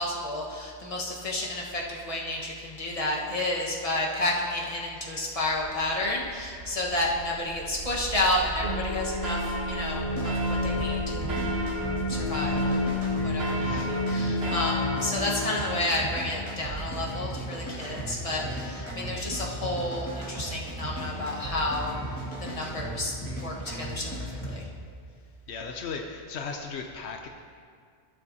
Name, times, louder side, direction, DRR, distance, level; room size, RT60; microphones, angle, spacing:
voice 1, 0.0-10.3 10.6-11.3 12.1-21.9 22.4-24.6, left 1 dB, 35° left, -3 dB, 1.4 m, -31 dB
sound 1, 5.4-14.2, right 4 dB, 45° right, 0.5 m, -40 dB
sound 2, 8.6-15.9, left 1 dB, 70° right, 1.5 m, -29 dB
sound 3, 10.0-24.5, right 1 dB, 10° left, 2.2 m, -36 dB
voice 2, 13.6-13.9 14.4-14.5 25.5-27.3, left 5 dB, 80° left, 3 dB, 1.0 m, -37 dB
16.0 x 7.5 x 2.8 m, 2.1 s
omnidirectional pair, 1.1 m